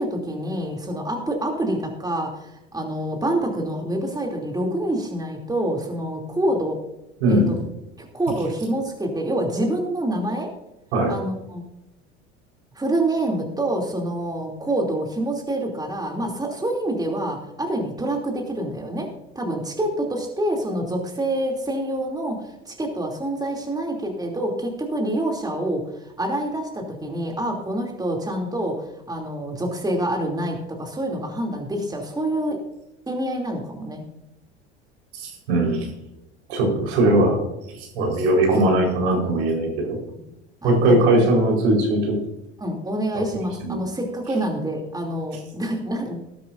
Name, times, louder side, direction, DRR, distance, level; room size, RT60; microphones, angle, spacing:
voice 1, 0.0-6.8 7.3-7.6 8.0-10.5 11.1-11.6 12.7-19.1 19.3-22.4 22.7-32.6 33.1-34.0 36.7-36.9 37.9-38.2 38.5-38.7 40.1-40.2 40.6-41.1 42.6-46.2, right 1 dB, 10° right, 1 dB, 2.9 m, -27 dB
voice 2, 7.2-7.5 10.9-11.1 35.2-35.9 36.5-37.4 38.0-40.0 40.6-42.2 43.6-43.8, right 1 dB, 70° right, 0 dB, 4.5 m, -19 dB
19.0 x 11.0 x 2.6 m, 0.91 s
figure-of-eight pair, 70°, 34 cm